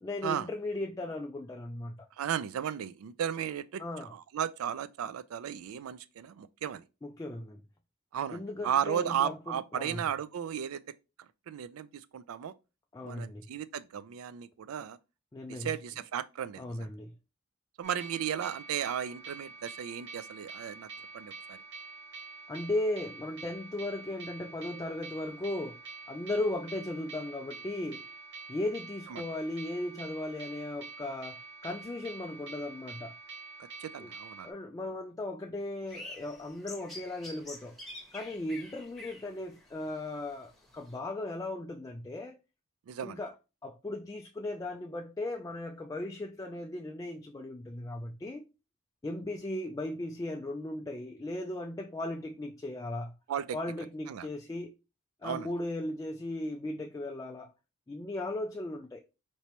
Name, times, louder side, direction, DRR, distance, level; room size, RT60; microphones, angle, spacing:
voice 1, 0.0-2.1 3.8-4.1 7.0-7.6 8.3-10.0 12.9-13.5 15.3-15.7 16.6-17.1 22.5-25.8 26.1-28.1 28.5-33.2 34.0-34.1 34.4-37.7 38.1-42.4 43.0-43.3 43.6-48.4 49.0-53.1 53.5-54.8 55.2-57.5 57.9-59.0, left 1 dB, 15° left, 0.3 m, -37 dB
voice 2, 2.2-6.8 8.1-10.8 11.5-12.5 13.0-15.0 15.5-16.9 17.8-20.9 21.1-21.6 29.1-29.3 33.8-34.5 42.9-43.2 53.3-53.6 54.1-54.3 55.2-55.5, right 9 dB, 85° right, 0.3 m, -35 dB
sound 1, 17.8-34.5, right 4 dB, 60° right, 1.0 m, -47 dB
sound 2, 35.9-41.0, left 2 dB, ahead, 0.9 m, -48 dB
4.4 x 3.0 x 2.9 m
head